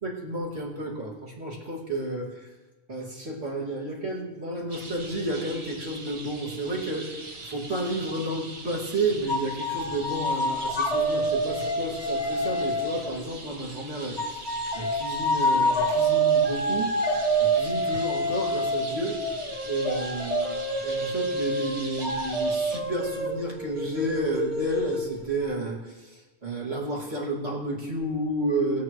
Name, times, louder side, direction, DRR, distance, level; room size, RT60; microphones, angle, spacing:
voice 1, 0.0-2.5 2.9-7.2 7.5-14.4 14.7-19.2 19.6-28.8, right 1 dB, 65° right, -4 dB, 2.8 m, -31 dB
sound 1, 4.7-22.8, right 2 dB, 30° right, 1.0 m, -42 dB
sound 2, 9.3-13.2 14.2-25.5, right 1 dB, 70° left, 2.3 m, -27 dB
21.0 x 8.5 x 3.2 m, 1.2 s
omnidirectional pair, 1.2 m